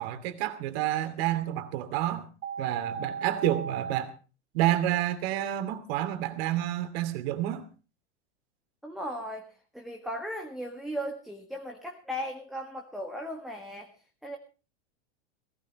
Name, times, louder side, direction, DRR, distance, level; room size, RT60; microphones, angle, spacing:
voice 1, 0.0-2.3 2.6-4.1 4.5-7.7, right 13 dB, 60° right, 10 dB, 2.8 m, -29 dB
sound 1, 2.4-4.0, right 6 dB, 30° right, 1.7 m, -36 dB
voice 2, 8.8-9.5 9.7-13.9 14.2-14.4, equal, ahead, 1 dB, 1.7 m, -37 dB
18.5 x 17.5 x 3.1 m, 0.34 s
supercardioid pair, 145°, 35 cm